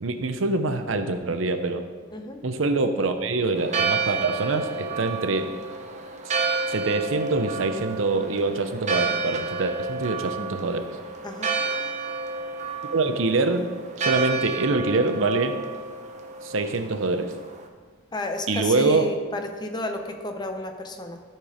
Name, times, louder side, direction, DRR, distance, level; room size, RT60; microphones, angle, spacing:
voice 1, 0.0-1.9 2.4-5.5 6.7-10.9 12.9-13.6 14.0-15.5 16.4-17.3 18.5-19.1, right 3 dB, 80° right, 8 dB, 0.7 m, -25 dB
voice 2, 2.1-2.4 11.2-11.5 18.1-21.2, left 1 dB, 20° left, 5 dB, 0.8 m, -32 dB
Church bell, 3.5-17.6, right 4 dB, 35° right, 0.8 m, -30 dB
13.0 x 4.5 x 5.0 m, 1.5 s
head